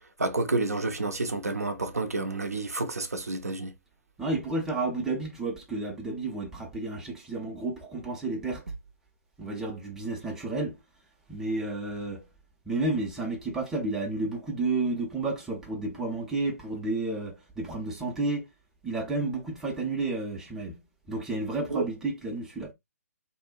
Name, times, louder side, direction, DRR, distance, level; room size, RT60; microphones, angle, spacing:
voice 1, 0.2-3.7 21.7-21.9, right 2 dB, 75° right, 0.5 m, -29 dB
voice 2, 4.2-8.7 9.4-10.8 11.3-12.2 12.7-18.5 18.8-20.8 21.1-22.7, right 2 dB, 5° right, 0.5 m, -31 dB
2.6 x 2.1 x 2.3 m
figure-of-eight pair, 130°, 8 cm